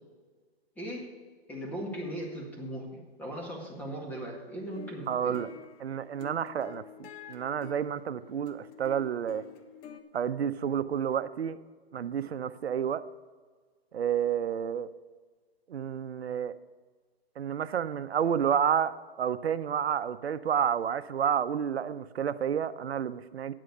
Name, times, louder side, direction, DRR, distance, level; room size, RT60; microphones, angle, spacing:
voice 1, 0.8-1.1 1.5-5.4, right 1 dB, 5° left, 1.9 m, -38 dB
sound 1, 4.7-10.0, left 7 dB, 25° left, 0.6 m, -48 dB
voice 2, 5.1-5.5 5.8-9.4 10.1-11.6 11.9-13.0 13.9-14.9 15.7-16.5 17.4-23.5, right 8 dB, 85° right, 0.7 m, -30 dB
9.3 x 7.6 x 6.7 m
hypercardioid pair, 145°, 31 cm